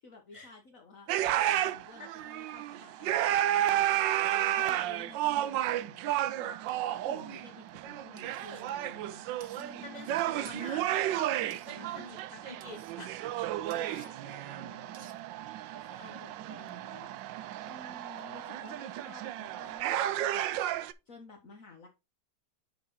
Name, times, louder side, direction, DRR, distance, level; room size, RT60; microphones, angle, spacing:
voice 1, 0.0-4.1 4.5-6.6 7.0-9.2 9.5-10.9 11.3-12.1 13.2-15.1 15.7-17.1 17.4-21.9, left 3 dB, 50° left, 1.5 m, -53 dB
sound 1, 1.1-20.9, right 13 dB, 85° right, 1.3 m, -32 dB
voice 2, 4.3-4.7 9.8-11.3 11.8-13.2 16.4-16.8 18.1-18.7, left 2 dB, 25° left, 2.2 m, -47 dB
sound 2, 8.2-8.6 9.4-9.7 10.4-10.8 11.5-11.8 12.6-13.0 13.7-14.1 14.9-15.2, right 8 dB, 55° right, 1.3 m, -55 dB
8.9 x 4.2 x 4.0 m
omnidirectional pair, 1.9 m